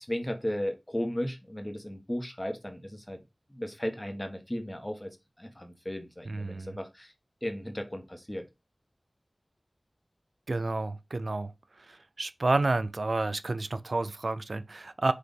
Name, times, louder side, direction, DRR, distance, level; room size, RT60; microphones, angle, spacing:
voice 1, 0.1-3.2 3.5-7.1 7.4-8.4, equal, 25° left, 1.4 m, -35 dB
voice 2, 6.3-6.8 10.5-11.5 12.2-15.1, right 2 dB, 80° right, 0.5 m, -30 dB
6.5 x 2.8 x 5.4 m
wide cardioid pair, 45°, 0 cm